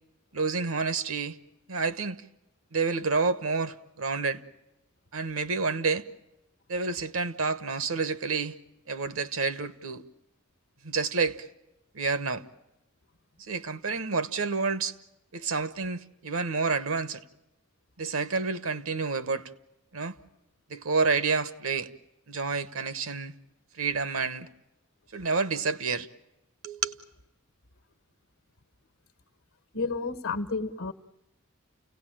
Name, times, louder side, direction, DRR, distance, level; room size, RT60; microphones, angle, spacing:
voice 1, 0.3-1.4 1.7-2.2 2.7-4.4 5.1-6.1 6.7-8.6 8.9-10.0 10.8-11.5 11.9-12.4 13.4-14.9 15.3-17.2 18.0-19.5 19.9-20.2 20.7-21.9 22.3-23.3 23.8-24.5 25.1-26.1 26.6-27.0, right 4 dB, 80° right, 1.2 m, -29 dB
voice 2, 29.7-30.9, left 3 dB, 85° left, 1.2 m, -31 dB
29.5 x 17.5 x 8.9 m
head